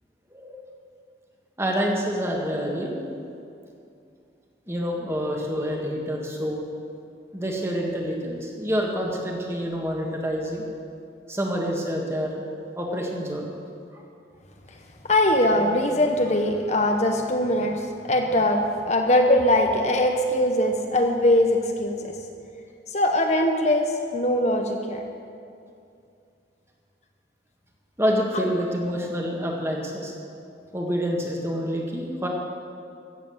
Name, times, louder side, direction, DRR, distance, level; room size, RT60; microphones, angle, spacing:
voice 1, 1.6-3.0 4.7-6.6 7.3-10.6 11.3-12.3 12.8-13.5 13.9-14.0 28.0-30.1 30.7-32.3, equal, 15° right, 0 dB, 1.6 m, -27 dB
voice 2, 15.1-17.8 18.1-22.1 22.9-25.0, left 1 dB, 40° left, 3 dB, 0.8 m, -21 dB
14.5 x 8.4 x 7.2 m, 2.5 s
head